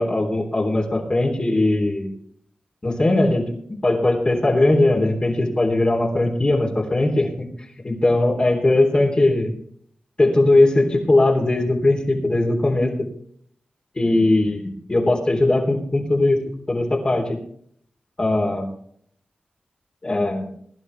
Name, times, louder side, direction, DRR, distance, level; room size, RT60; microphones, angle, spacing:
voice 1, 0.0-2.1 2.8-3.5 3.8-7.5 7.8-9.5 10.2-12.9 14.0-16.4 16.7-17.4 18.2-18.7 20.0-20.5, left 2 dB, 35° left, -3 dB, 3.5 m, -19 dB
22.0 x 11.0 x 3.4 m, 0.64 s
wide cardioid pair, 75°, 3 cm